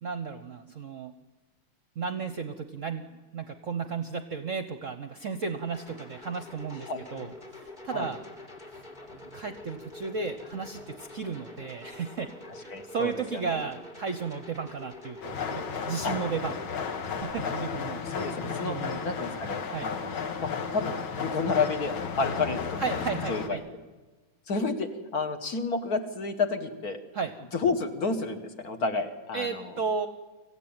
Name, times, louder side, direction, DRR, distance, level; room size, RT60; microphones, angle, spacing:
voice 1, 0.0-1.1 2.0-3.0 3.3-8.2 9.3-12.3 12.6-16.5 17.0-18.0 18.6-19.0 19.7-19.9 22.8-23.6 27.1-27.3 29.3-30.1, right 5 dB, 50° right, 8 dB, 1.0 m, -34 dB
sound 1, 5.7-17.2, left 2 dB, 20° left, 2.7 m, -46 dB
voice 2, 6.8-7.3 7.9-8.1 12.7-13.6 16.0-16.2 18.0-18.8 19.0-22.9 23.3-23.6 24.5-27.0 27.5-29.7, left 4 dB, 50° left, 6 dB, 1.9 m, -31 dB
sound 2, 15.2-23.5, left 6 dB, 80° left, 2.3 m, -33 dB
25.0 x 15.5 x 8.9 m, 1.3 s
omnidirectional pair, 2.2 m